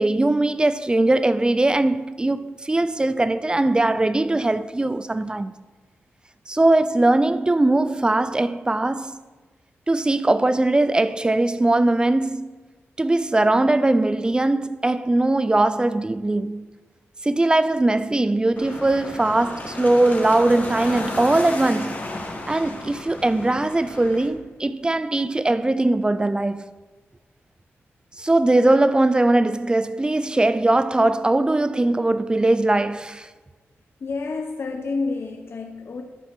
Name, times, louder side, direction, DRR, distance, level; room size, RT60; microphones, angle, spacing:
voice 1, 0.0-5.5 6.5-9.2 9.9-12.5 13.0-16.7 17.2-22.0 22.5-26.7 28.2-33.3, right 2 dB, 20° right, 0.4 m, -20 dB
sound 1, 18.6-24.3, left 2 dB, 40° left, 1.7 m, -33 dB
voice 2, 34.0-36.0, left 3 dB, 60° left, 0.7 m, -29 dB
11.5 x 4.3 x 5.8 m
cardioid pair, 65°, 5 cm